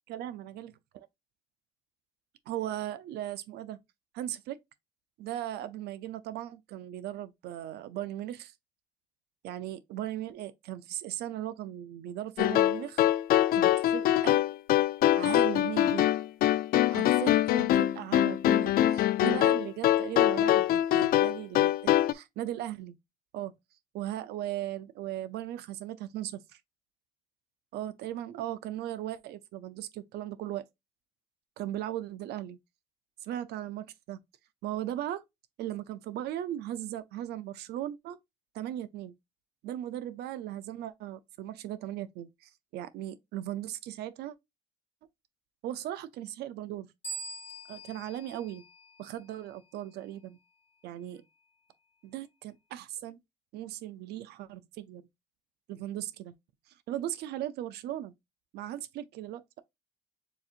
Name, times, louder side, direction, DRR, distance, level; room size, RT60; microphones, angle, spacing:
voice 1, 0.1-0.7 2.5-3.8 4.1-4.6 5.2-8.5 9.4-13.0 13.5-14.4 15.1-16.1 16.9-23.0 23.3-23.5 23.9-26.4 27.7-30.6 31.6-32.6 33.2-34.2 34.6-35.2 35.6-38.2 38.5-39.2 39.6-44.3 45.6-46.9 47.7-48.6 49.0-50.4 50.8-51.2 52.0-53.2 53.5-55.1 55.7-56.3 56.9-58.1 58.5-59.6, right 12 dB, 75° right, 0.5 m, -37 dB
sound 1, 12.4-22.1, left 13 dB, 60° left, 0.4 m, -24 dB
sound 2, 47.0-49.5, right 3 dB, 40° left, 1.2 m, -43 dB
7.0 x 2.8 x 2.4 m
cardioid pair, 110°, 17 cm